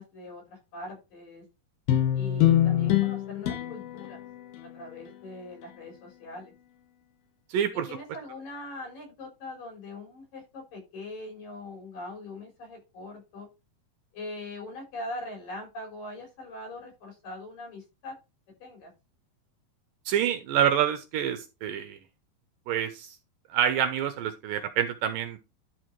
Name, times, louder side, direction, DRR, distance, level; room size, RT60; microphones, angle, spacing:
voice 1, 0.0-1.4 2.1-4.2 4.6-6.5 7.7-13.5 14.1-18.2 18.6-18.9, left 2 dB, 65° left, 1 dB, 5.8 m, -41 dB
sound 1, 1.9-6.5, left 12 dB, 80° left, 3.1 m, -27 dB
voice 2, 7.5-7.9 20.1-22.0 22.7-23.2 23.5-25.4, right 9 dB, 75° right, 8 dB, 2.4 m, -27 dB
11.0 x 4.7 x 4.5 m, 0.27 s
omnidirectional pair, 4.3 m